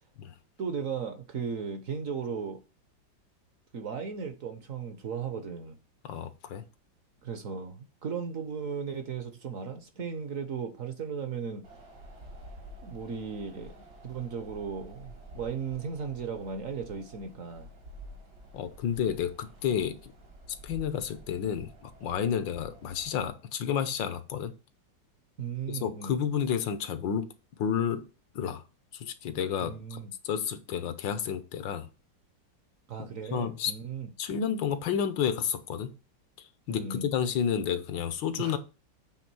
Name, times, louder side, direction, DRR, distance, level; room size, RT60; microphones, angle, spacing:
voice 1, 0.6-2.6 3.7-5.8 7.2-11.7 12.8-13.7 14.0-17.7 25.4-26.2 29.6-30.1 32.9-34.1 36.7-37.1 38.4-38.6, right 6 dB, 55° right, 1.1 m, -36 dB
voice 2, 6.0-6.6 18.5-20.1 20.6-24.5 25.7-27.3 27.6-28.1 28.3-28.6 28.9-30.0 30.2-31.9 33.0-33.7 34.2-35.9 36.4-38.6, left 8 dB, 80° left, 1.6 m, -31 dB
Wind, 11.6-23.3, right 1 dB, 75° right, 2.9 m, -50 dB
8.2 x 3.6 x 6.1 m
omnidirectional pair, 2.0 m